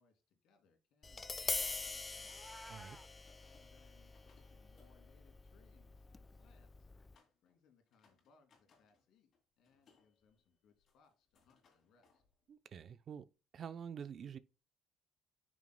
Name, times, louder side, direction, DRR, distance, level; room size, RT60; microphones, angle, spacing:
voice 1, 0.0-2.5 3.4-6.9 7.4-9.3 9.6-12.2, left 5 dB, 70° left, 2.3 m, -72 dB
Tap, 1.0-7.2, left 3 dB, 20° left, 0.3 m, -44 dB
sound 1, 1.5-6.1 7.1-7.6 7.9-9.1 9.3-12.9, left 5 dB, 50° left, 2.5 m, -73 dB
Meow, 2.2-3.1, equal, 5° right, 0.9 m, -54 dB
voice 2, 12.5-13.3 13.5-14.4, right 7 dB, 50° right, 0.6 m, -47 dB
9.0 x 6.2 x 2.2 m
cardioid pair, 105°, 0 cm